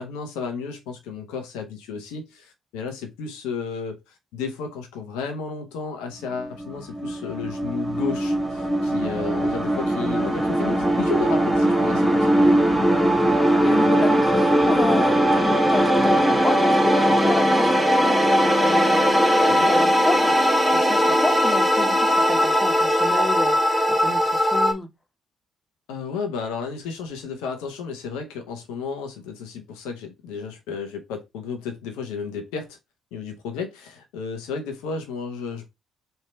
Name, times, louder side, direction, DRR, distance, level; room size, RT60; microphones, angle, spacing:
voice 1, 0.0-12.3 19.5-19.7 25.9-32.8 33.1-35.7, left 5 dB, 75° left, 0.8 m, -33 dB
sound 1, 6.4-24.7, equal, 10° right, 1.3 m, -20 dB
voice 2, 12.8-13.3 13.6-24.9, left 3 dB, 30° left, 1.1 m, -31 dB
3.3 x 2.8 x 4.3 m
hypercardioid pair, 45°, 0 cm